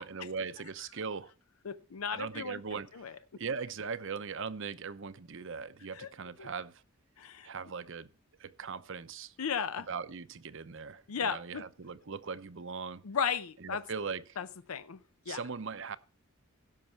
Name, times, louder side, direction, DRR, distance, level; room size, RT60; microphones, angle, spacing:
voice 1, 0.0-1.3 2.1-6.8 7.4-8.1 8.4-9.3 9.9-13.0 13.6-14.4 15.3-16.0, right 5 dB, 60° right, 0.7 m, -40 dB
voice 2, 1.6-2.6 2.9-3.4 5.9-6.1 6.4-6.5 7.2-7.5 9.4-9.9 11.1-11.7 13.0-13.8 14.4-15.0 15.3-15.4, left 6 dB, 90° left, 0.6 m, -35 dB
16.5 x 6.1 x 4.5 m
head